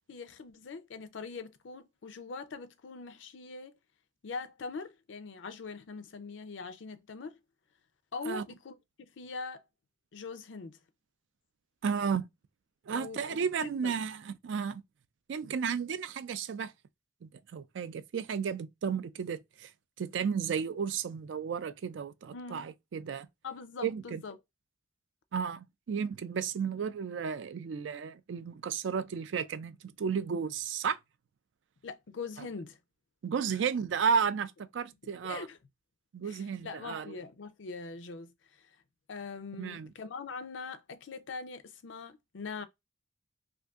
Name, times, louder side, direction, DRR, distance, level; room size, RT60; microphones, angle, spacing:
voice 1, 0.1-3.7 4.2-7.4 8.1-9.6 10.1-10.8 12.9-13.2 13.6-13.9 22.3-22.7 23.4-24.4 31.8-32.8 33.5-33.6 35.2-35.6 36.2-38.3 38.6-38.7 39.1-42.7, left 4 dB, 85° left, 0.5 m, -42 dB
voice 2, 11.8-12.3 12.9-14.8 15.3-16.7 17.2-19.7 20.0-23.3 23.8-24.2 25.3-31.0 33.2-35.5 36.1-37.2 39.6-39.9, right 6 dB, 80° right, 0.4 m, -33 dB
2.7 x 2.5 x 3.4 m
head